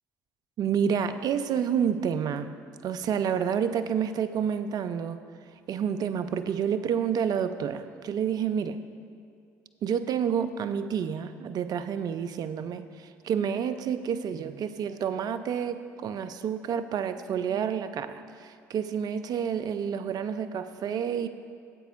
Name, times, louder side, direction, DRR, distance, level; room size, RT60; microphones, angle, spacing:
voice 1, 0.6-2.5 2.8-5.2 5.7-8.8 9.8-21.3, right 7 dB, 50° right, 11 dB, 0.5 m, -29 dB
13.5 x 8.0 x 2.6 m, 2.3 s
hypercardioid pair, 60°, 9 cm